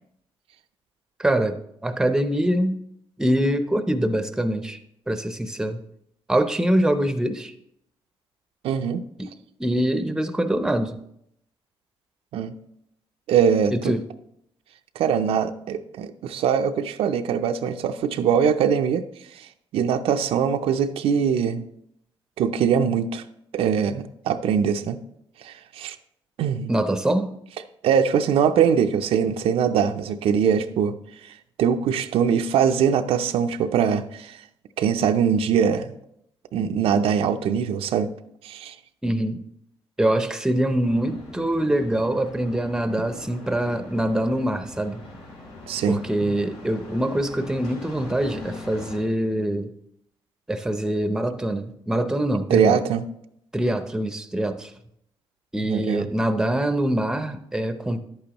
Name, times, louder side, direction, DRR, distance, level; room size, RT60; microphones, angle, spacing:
voice 1, 1.2-2.8 3.2-4.8 5.1-5.8 6.3-7.5 9.2-9.3 9.6-11.0 13.7-14.0 26.7-27.3 39.0-39.4 40.0-45.0 45.9-49.7 50.5-52.8 53.5-54.7 55.5-58.0, right 1 dB, 5° right, 9 dB, 0.6 m, -24 dB
voice 2, 8.6-9.0 12.3-12.6 13.3-13.9 15.0-19.0 19.3-19.5 19.7-21.6 22.4-23.2 23.5-25.0 25.4-26.0 26.4-26.7 27.8-30.9 31.2-34.4 34.8-36.0 36.5-38.1 38.4-38.7 45.7-46.0 52.5-53.0 55.6-56.1, right 7 dB, 80° right, 7 dB, 0.5 m, -22 dB
sound 1, 40.8-49.0, left 2 dB, 90° left, 3.5 m, -42 dB
10.5 x 8.7 x 3.0 m, 0.74 s
cardioid pair, 110°, 10 cm